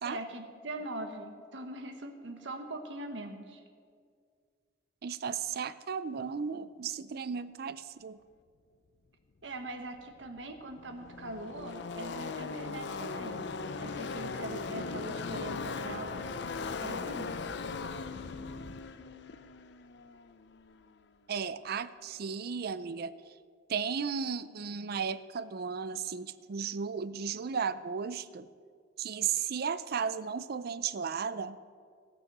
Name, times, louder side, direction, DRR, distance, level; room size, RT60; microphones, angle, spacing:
voice 1, 0.0-3.6 9.4-13.5 13.8-16.3 16.8-17.4, right 1 dB, 80° right, 6 dB, 1.3 m, -42 dB
voice 2, 5.0-8.2 21.3-23.1 23.7-28.5 29.0-31.6, right 6 dB, 55° right, 15 dB, 0.5 m, -35 dB
Car passing by / Race car auto racing, 10.0-10.1 10.3-20.8, left 4 dB, 65° left, 0.5 m, -39 dB
17.0 x 6.2 x 6.7 m, 2.1 s
head